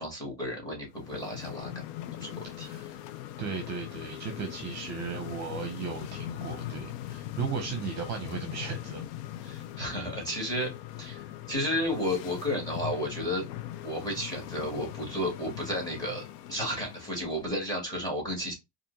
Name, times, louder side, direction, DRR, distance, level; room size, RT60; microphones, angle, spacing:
voice 1, 0.0-1.7 2.2-2.7 9.4-10.7 11.0-13.5 13.8-18.5, equal, 10° left, 2.3 m, -32 dB
sound 1, 0.9-17.5, left 13 dB, 80° left, 0.6 m, -41 dB
voice 2, 2.4-3.0 3.4-9.0, right 6 dB, 35° right, 0.8 m, -36 dB
4.3 x 2.6 x 2.8 m
supercardioid pair, 125°, 47 cm